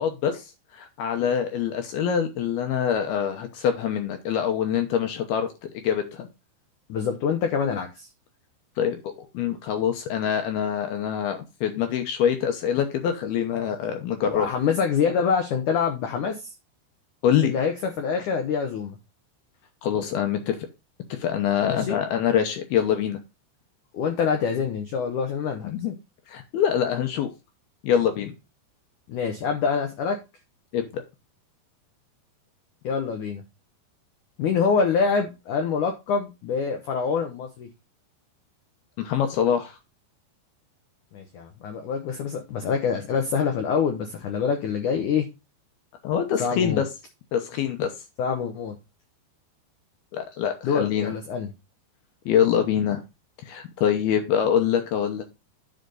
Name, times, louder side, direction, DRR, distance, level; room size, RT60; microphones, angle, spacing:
voice 1, 0.0-5.5 5.7-6.3 8.8-14.5 17.2-17.5 19.8-20.6 21.1-23.2 25.6-25.9 26.3-27.3 27.8-28.3 30.7-31.0 39.0-39.8 46.0-46.9 47.3-47.9 50.1-51.1 52.3-53.0 53.4-55.2, left 8 dB, 75° left, 6 dB, 2.5 m, -25 dB
voice 2, 6.9-8.1 14.3-16.5 17.4-19.0 21.6-22.0 23.9-25.7 29.1-30.2 32.8-33.4 34.4-37.7 41.1-45.3 46.4-46.8 48.2-48.8 50.6-51.5, left 6 dB, 90° left, 5 dB, 1.7 m, -25 dB
10.0 x 5.2 x 3.9 m, 0.26 s
omnidirectional pair, 5.3 m